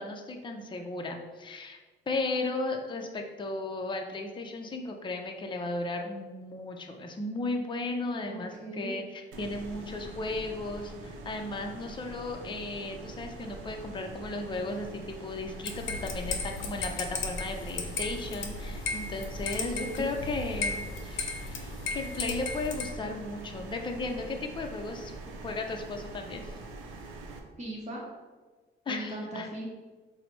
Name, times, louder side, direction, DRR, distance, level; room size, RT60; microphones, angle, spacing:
voice 1, 0.0-1.8 2.1-26.4 28.9-29.5, left 2 dB, 25° left, 3 dB, 0.5 m, -35 dB
voice 2, 8.2-9.0 19.5-20.1 27.6-28.0 28.9-29.7, right 1 dB, 35° right, -5 dB, 0.9 m, -38 dB
sound 1, 9.3-27.4, right 2 dB, 85° right, 0.5 m, -44 dB
sound 2, 15.6-22.9, left 3 dB, 75° left, 0.6 m, -35 dB
4.0 x 2.0 x 4.4 m, 1.3 s
cardioid pair, 90°, 20 cm